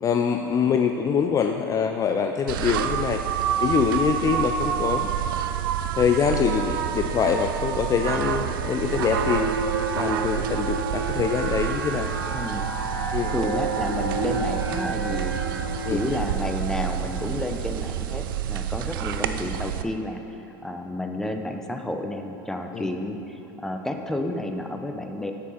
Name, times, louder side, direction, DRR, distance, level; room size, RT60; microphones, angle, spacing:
voice 1, 0.0-3.2 3.6-5.1 6.0-9.5 9.9-12.1 13.1-13.3 15.9-16.0 22.7-22.8, left 7 dB, 30° left, 5 dB, 0.5 m, -24 dB
sound 1, 2.5-19.8, right 10 dB, 70° right, 0.5 m, -28 dB
sound 2, 8.4-17.9, right 3 dB, 90° right, 0.9 m, -31 dB
voice 2, 12.3-12.7 13.3-15.4 15.9-20.2 20.6-25.3, left 1 dB, 5° left, 4 dB, 0.8 m, -31 dB
8.1 x 7.8 x 5.7 m, 2.9 s
hypercardioid pair, 85°, 12 cm